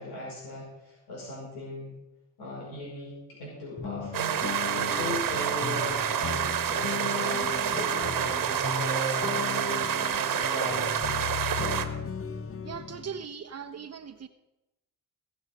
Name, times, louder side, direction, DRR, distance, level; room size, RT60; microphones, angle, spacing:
voice 1, 0.0-1.9 2.4-4.4 4.7-9.7 10.2-11.0, left 1 dB, 85° left, -5 dB, 5.4 m, -38 dB
sound 1, 3.8-13.3, left 5 dB, 35° left, 1.1 m, -36 dB
sound 2, 4.1-11.8, right 9 dB, 60° right, 1.4 m, -28 dB
voice 2, 12.6-14.3, right 7 dB, 40° right, 7 dB, 0.9 m, -39 dB
21.0 x 7.1 x 5.4 m, 0.98 s
cardioid pair, 75°, 37 cm